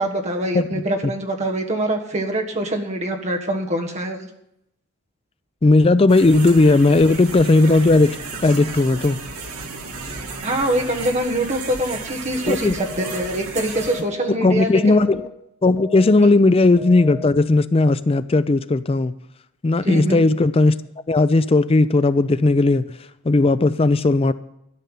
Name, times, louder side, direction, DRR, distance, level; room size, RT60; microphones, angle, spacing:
voice 1, 0.0-4.3 10.4-15.0 16.2-16.4 19.8-20.2, right 1 dB, 30° right, 1.4 m, -24 dB
voice 2, 5.6-8.2 8.4-9.2 12.5-12.7 14.3-15.3 15.6-19.1 19.6-20.8 21.1-22.9 23.3-24.3, left 2 dB, 25° left, 0.4 m, -16 dB
sound 1, 6.1-14.0, right 4 dB, 85° right, 2.0 m, -34 dB
sound 2, 12.8-13.3 13.8-14.3 14.8-15.3 15.8-16.3 16.8-17.3, left 6 dB, 60° left, 1.2 m, -35 dB
12.5 x 5.6 x 9.1 m
head